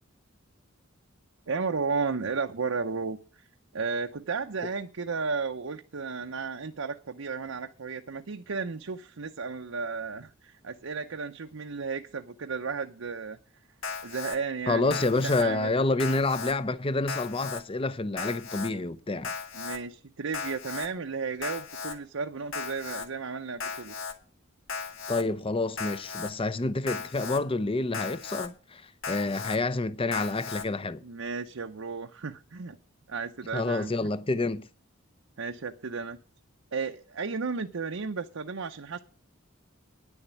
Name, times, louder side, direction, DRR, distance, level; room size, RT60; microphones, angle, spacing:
voice 1, 1.5-3.5 3.7-13.4 14.0-15.8 19.5-23.9 31.0-32.8 33.1-33.9 35.4-36.2 36.7-39.0, right 4 dB, 85° right, 0.7 m, -34 dB
Alarm, 13.8-14.4 14.9-15.4 16.0-16.5 17.1-17.6 18.2-18.7 19.2-19.8 20.3-20.9 21.4-22.0 22.5-23.1 23.6-24.1 24.7-25.2 25.8-26.3 26.9-27.4 27.9-28.5 29.0-29.6 30.1-30.6, left 5 dB, 85° left, 1.8 m, -36 dB
voice 2, 14.7-19.3 25.1-31.0 33.5-34.7, left 2 dB, 25° left, 0.6 m, -28 dB
10.0 x 7.2 x 9.2 m
head